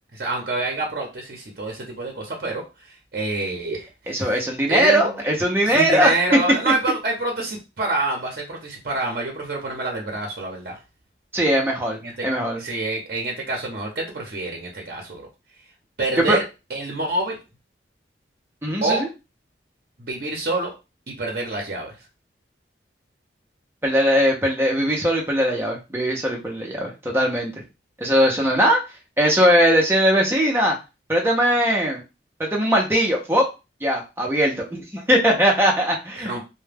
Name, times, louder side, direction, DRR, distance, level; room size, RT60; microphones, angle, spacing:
voice 1, 0.1-2.6 3.1-4.4 4.7-5.0 5.6-10.8 11.9-12.3 12.6-15.2 16.0-16.4 16.7-17.4 18.8-19.1 20.0-20.7 21.1-21.9 36.2-36.4, right 2 dB, 55° right, 0 dB, 0.7 m, -27 dB
voice 2, 4.1-6.1 11.3-12.6 16.2-16.4 18.6-19.1 23.8-27.6 28.0-28.8 29.2-30.8 31.1-32.0 32.4-33.5 33.8-36.3, equal, 10° right, -1 dB, 0.6 m, -20 dB
2.2 x 2.1 x 3.3 m, 0.27 s
head